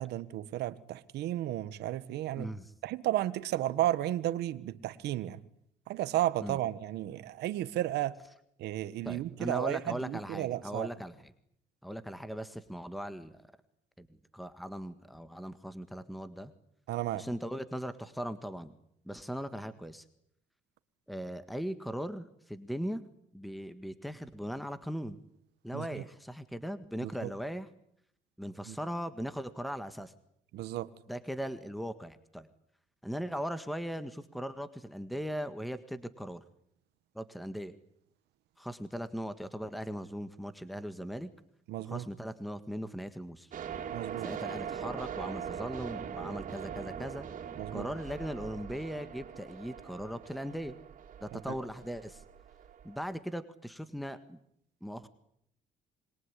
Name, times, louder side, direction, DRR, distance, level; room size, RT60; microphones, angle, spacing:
voice 1, 0.0-2.5 2.8-5.4 5.9-8.1 8.6-10.9 16.9-17.3 25.7-26.0 27.0-27.3 28.7-28.8 30.5-30.9 41.7-42.1 43.9-44.3 47.6-47.9 51.3-51.5, right 14 dB, 80° right, 1.5 m, -33 dB
voice 2, 9.1-11.1 11.8-13.3 14.0-16.5 17.1-18.7 19.1-20.0 21.1-23.0 23.3-25.2 25.6-27.7 28.4-30.1 31.1-32.5 33.0-36.4 37.2-37.7 38.6-41.3 41.8-43.5 44.2-47.3 47.7-50.8 51.2-52.2 52.8-54.4 54.8-55.1, equal, ahead, 1.7 m, -39 dB
sound 1, 43.5-53.1, right 8 dB, 50° right, 3.8 m, -42 dB
26.5 x 22.0 x 10.0 m
cardioid pair, 110°, 17 cm